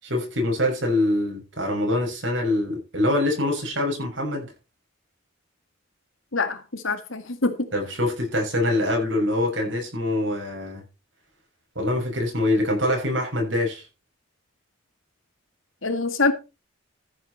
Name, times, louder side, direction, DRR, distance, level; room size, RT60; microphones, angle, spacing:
voice 1, 0.0-4.5 7.7-10.8 11.7-13.9, left 1 dB, 65° right, 6.4 m, -24 dB
voice 2, 6.3-7.7 15.8-16.3, left 3 dB, 80° left, 2.1 m, -25 dB
14.5 x 8.2 x 4.4 m
head